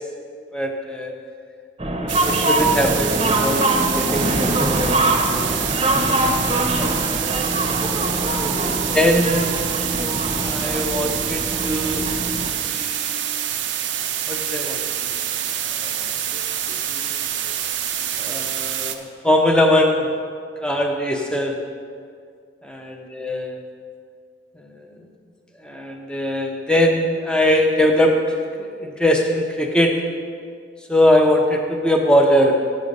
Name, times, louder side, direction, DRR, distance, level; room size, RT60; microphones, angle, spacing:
voice 1, 0.5-1.1 2.0-5.6 5.9-7.3 8.2-9.6 10.4-12.0 12.7-13.2 14.3-15.2 15.7-17.3 18.2-20.1 20.6-21.6 22.6-23.6 24.6-24.9 25.6-30.0 30.9-32.5, left 1 dB, 5° left, 2 dB, 0.7 m, -22 dB
sound 1, 1.8-12.5, right 1 dB, 30° right, 0.8 m, -23 dB
sound 2, 2.1-19.0, right 10 dB, 75° right, 0.6 m, -26 dB
9.4 x 7.5 x 5.3 m, 2.2 s
head